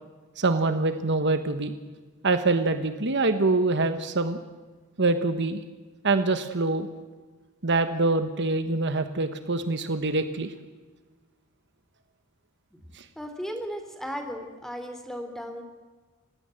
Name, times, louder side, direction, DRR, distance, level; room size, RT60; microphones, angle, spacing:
voice 1, 0.4-1.7 2.2-4.4 5.0-5.6 6.0-6.9 7.6-10.5 12.9-13.0, right 3 dB, 50° right, 9 dB, 1.3 m, -25 dB
voice 2, 13.1-15.6, equal, ahead, 6 dB, 3.2 m, -36 dB
29.0 x 16.5 x 7.8 m, 1.3 s
head